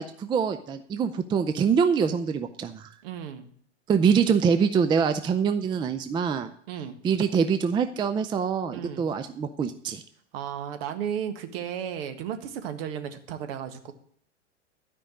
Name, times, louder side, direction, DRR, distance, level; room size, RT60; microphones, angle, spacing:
voice 1, 0.0-2.9 3.9-6.5 7.0-10.0, right 6 dB, 15° right, 9 dB, 0.5 m, -24 dB
voice 2, 3.0-3.5 6.7-7.0 8.7-9.1 10.3-13.9, right 9 dB, 55° right, 8 dB, 1.7 m, -34 dB
13.0 x 5.3 x 8.8 m, 0.62 s
figure-of-eight pair, 95°, 36 cm